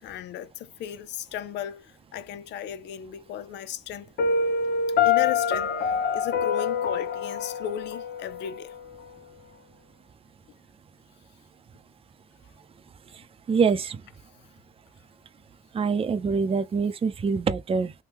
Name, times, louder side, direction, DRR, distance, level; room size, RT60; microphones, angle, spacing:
voice 1, 0.0-4.1 5.0-8.7, left 10 dB, 90° left, 0.5 m, -36 dB
Piano, 4.2-9.1, left 6 dB, 65° left, 0.9 m, -26 dB
voice 2, 13.1-14.0 15.7-17.9, right 5 dB, 30° right, 0.5 m, -25 dB
3.5 x 2.2 x 2.9 m
cardioid pair, 105°, 18 cm